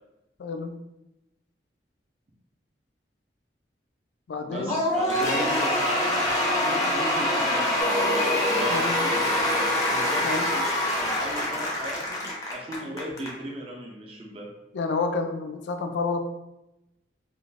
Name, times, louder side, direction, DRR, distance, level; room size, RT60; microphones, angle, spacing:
voice 1, 0.4-0.8 4.3-4.8 8.7-9.0 10.2-10.5 14.7-16.3, left 4 dB, 80° left, 6 dB, 0.3 m, -29 dB
voice 2, 4.4-7.9 8.5-14.5, equal, 30° right, -1 dB, 0.5 m, -37 dB
Cheering / Applause / Crowd, 4.7-13.3, left 1 dB, 20° left, 0.5 m, -25 dB
Singing, 7.8-12.5, equal, 70° right, 0.8 m, -33 dB
2.5 x 2.3 x 3.2 m, 0.91 s
head